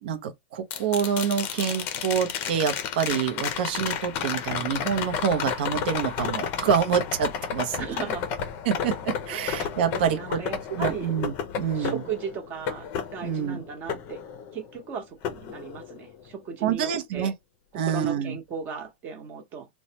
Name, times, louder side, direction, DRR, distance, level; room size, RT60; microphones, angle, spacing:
voice 1, 0.0-7.9 8.6-10.4 10.7-12.0 13.2-13.6 16.6-17.3 17.7-18.4, right 8 dB, 55° right, 0.7 m, -27 dB
sound 1, 0.7-14.8 15.2-16.3 18.5-18.6, left 7 dB, 35° left, 0.6 m, -32 dB
voice 2, 7.8-8.3 9.3-9.5 9.9-11.1 11.7-14.2 14.5-17.3 17.8-19.7, right 6 dB, 30° right, 0.9 m, -36 dB
3.0 x 2.1 x 2.8 m
supercardioid pair, 155°, 6 cm